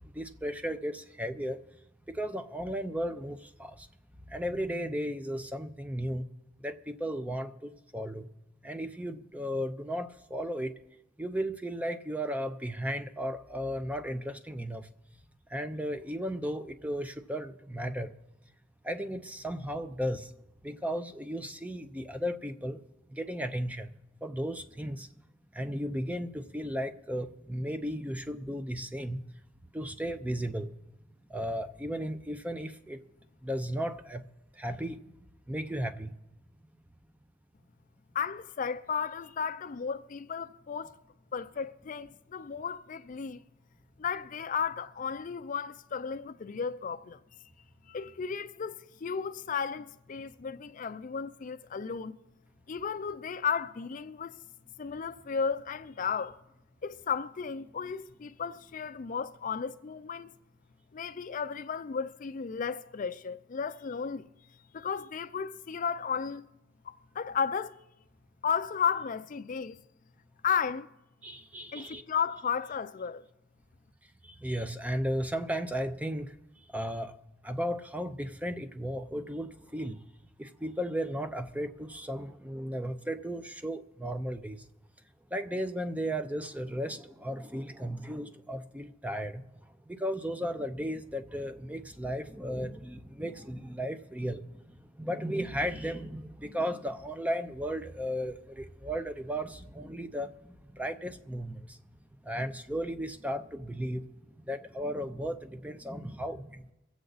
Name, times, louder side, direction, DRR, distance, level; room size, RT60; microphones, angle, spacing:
voice 1, 0.1-1.6 2.1-3.9 4.3-6.3 6.6-8.3 8.6-10.7 11.2-14.9 15.5-18.1 18.8-20.3 20.6-22.8 23.1-23.9 24.2-25.1 25.5-29.2 29.7-30.7 31.3-33.0 33.4-34.2 34.6-35.0 35.5-36.1 71.2-72.0 74.4-76.3 76.7-77.2 77.4-80.0 80.4-84.6 85.3-89.4 89.9-94.4 95.0-100.3 100.7-101.6 102.3-104.1 104.5-106.7, equal, 5° right, 0.6 m, -35 dB
voice 2, 38.1-41.0 41.3-43.4 44.0-47.2 47.9-52.2 52.7-54.4 54.8-56.4 56.8-60.3 60.9-64.3 64.7-66.5 66.8-67.7 68.4-69.8 70.4-70.9 71.7-73.2, left 6 dB, 40° left, 0.4 m, -34 dB
23.5 x 8.0 x 4.0 m
head